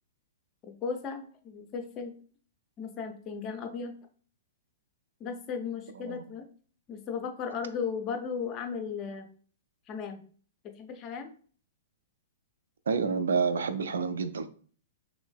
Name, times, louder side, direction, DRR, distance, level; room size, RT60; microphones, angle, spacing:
voice 1, 0.7-2.1 2.8-4.0 5.2-6.5 6.9-9.3 9.9-10.2 10.6-11.3, left 6 dB, 30° left, 0.5 m, -36 dB
voice 2, 12.9-14.5, right 5 dB, 65° right, 0.3 m, -29 dB
3.1 x 3.1 x 2.3 m
figure-of-eight pair, 110°, 0 cm